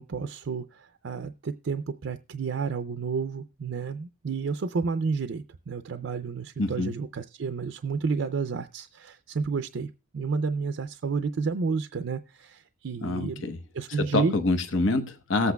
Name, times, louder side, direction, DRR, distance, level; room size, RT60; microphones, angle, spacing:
voice 1, 0.0-13.5 13.7-14.3, right 5 dB, 70° right, 9 dB, 0.4 m, -31 dB
voice 2, 6.6-6.9 13.0-13.6 13.9-15.5, left 2 dB, 75° left, 7 dB, 1.0 m, -26 dB
18.5 x 8.1 x 2.3 m, 0.32 s
head